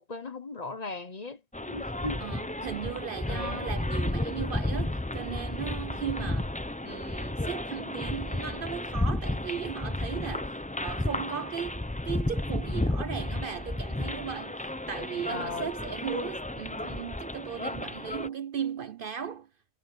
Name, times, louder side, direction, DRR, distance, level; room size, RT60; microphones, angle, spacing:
voice 1, 0.0-1.4 1.7-2.3 3.2-3.7 15.3-15.7, left 3 dB, 35° left, 1.1 m, -37 dB
sound 1, 1.5-18.3, left 1 dB, 10° left, 0.5 m, -33 dB
voice 2, 2.2-6.5 6.8-10.5 10.8-19.5, right 8 dB, 60° right, 0.7 m, -37 dB
omnidirectional pair, 1.2 m